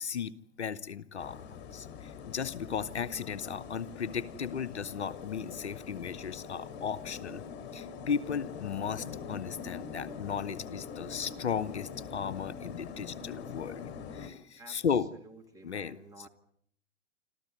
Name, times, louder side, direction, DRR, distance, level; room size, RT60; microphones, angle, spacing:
voice 1, 0.0-1.4 1.7-7.4 7.7-13.9 14.1-15.1 15.6-16.0, left 7 dB, 65° left, 12 dB, 1.0 m, -35 dB
sound 1, 1.2-14.3, left 6 dB, 30° left, 3.7 m, -43 dB
voice 2, 14.6-16.3, right 2 dB, 10° right, 4 dB, 2.2 m, -53 dB
27.0 x 14.0 x 9.5 m, 0.66 s
figure-of-eight pair, 110°, 37 cm